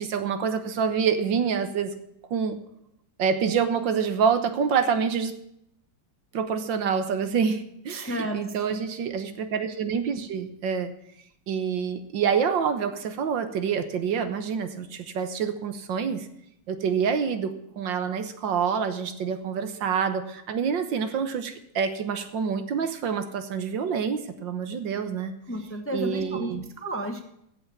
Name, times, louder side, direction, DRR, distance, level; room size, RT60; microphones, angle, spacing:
voice 1, 0.0-1.9 2.3-2.6 3.2-5.4 6.3-10.9 11.5-16.3 16.7-25.3 25.9-26.6, right 6 dB, 70° right, 9 dB, 1.8 m, -27 dB
voice 2, 7.9-8.8 25.5-26.5 26.8-27.2, equal, 10° left, 5 dB, 0.9 m, -32 dB
16.0 x 5.8 x 7.2 m, 0.76 s
omnidirectional pair, 2.1 m